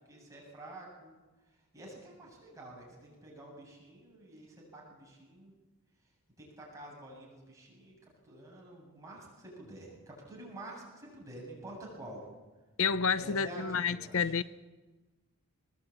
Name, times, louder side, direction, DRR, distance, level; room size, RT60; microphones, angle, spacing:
voice 1, 0.1-1.1 1.7-5.5 6.4-7.9 8.2-12.3 13.2-14.4, right 1 dB, 15° right, 7.8 m, -48 dB
voice 2, 12.8-14.4, left 6 dB, 65° left, 0.6 m, -29 dB
21.5 x 20.0 x 8.8 m
head